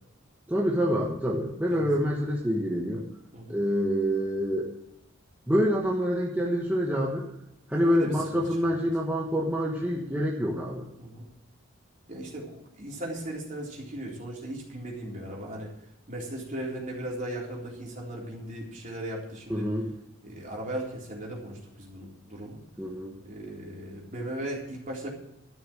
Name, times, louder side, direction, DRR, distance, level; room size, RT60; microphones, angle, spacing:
voice 1, 0.5-3.0 3.5-4.7 5.5-7.3 7.7-10.8 19.5-19.9 22.8-23.2, equal, 10° right, -3 dB, 1.2 m, -26 dB
voice 2, 7.7-8.4 11.0-11.3 12.1-15.7 16.1-19.7 20.2-22.6 23.2-25.1, right 1 dB, 40° right, -3 dB, 3.8 m, -37 dB
13.0 x 6.7 x 8.8 m, 0.87 s
head